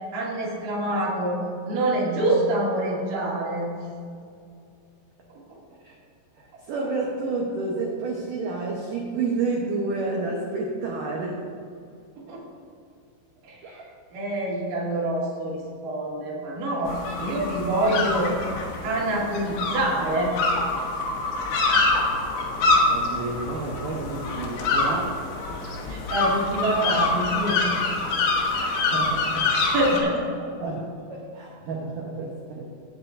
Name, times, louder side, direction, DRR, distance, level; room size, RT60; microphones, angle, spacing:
voice 1, 0.1-1.4 1.6-3.7 12.2-12.4 13.4-13.8 14.1-18.3 18.8-20.3 25.7-28.1 29.7-30.2, right 1 dB, 55° right, -6 dB, 3.6 m, -26 dB
voice 2, 6.4-11.4 13.6-13.9 22.9-25.1 27.7-27.8 28.5-29.5 30.6-32.7, right 3 dB, 80° right, -2 dB, 1.9 m, -30 dB
sound 1, 16.9-30.0, left 3 dB, 70° left, 3.2 m, -25 dB
17.0 x 8.1 x 2.6 m, 2.4 s
omnidirectional pair, 5.2 m